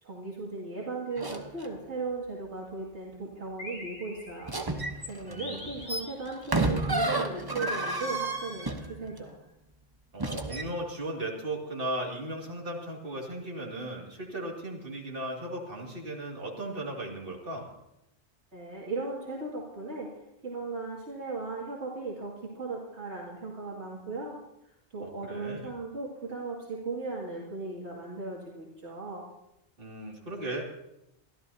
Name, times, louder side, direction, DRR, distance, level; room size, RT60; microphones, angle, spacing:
voice 1, 0.0-4.6 5.0-9.4 18.5-20.1 20.4-24.4 24.9-29.2, right 3 dB, 75° right, -4 dB, 2.6 m, -37 dB
sound 1, 1.2-1.7 4.5-9.2 10.2-10.7, right 2 dB, 20° right, 1.0 m, -31 dB
sound 2, 3.6-4.7 5.4-6.5 7.6-9.1, left 1 dB, 80° left, 3.1 m, -40 dB
voice 2, 5.2-5.9 10.1-17.7 25.0-25.7 29.8-30.6, right 1 dB, 55° right, -2 dB, 2.8 m, -37 dB
23.5 x 14.0 x 2.8 m, 0.87 s
omnidirectional pair, 1.2 m